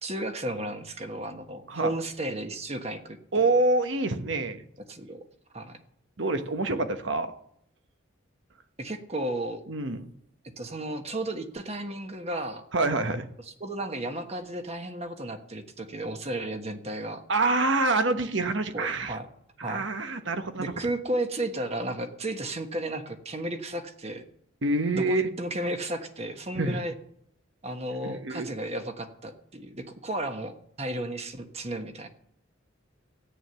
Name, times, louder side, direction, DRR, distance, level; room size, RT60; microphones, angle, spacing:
voice 1, 0.0-3.4 4.9-5.2 5.5-5.8 8.8-9.6 10.6-12.6 13.6-17.2 18.7-19.3 19.6-19.9 20.6-24.2 24.9-26.9 27.6-32.1, right 1 dB, 30° right, 6 dB, 1.3 m, -33 dB
voice 2, 3.3-4.6 6.2-7.3 9.7-10.1 12.7-13.3 17.3-19.2 19.6-20.7 24.6-25.3 26.5-26.8 28.0-28.5, right 2 dB, 60° right, 8 dB, 1.2 m, -26 dB
14.0 x 9.5 x 6.9 m, 0.72 s
head